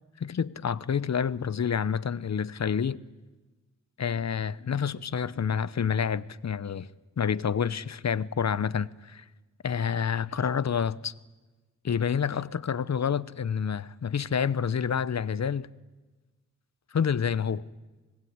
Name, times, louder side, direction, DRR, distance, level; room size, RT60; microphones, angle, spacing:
voice 1, 0.2-3.0 4.0-6.9 7.2-9.2 9.6-11.1 11.8-15.7 16.9-17.6, left 7 dB, 55° left, 0.9 m, -28 dB
25.0 x 20.5 x 9.6 m
cardioid pair, 60°, 33 cm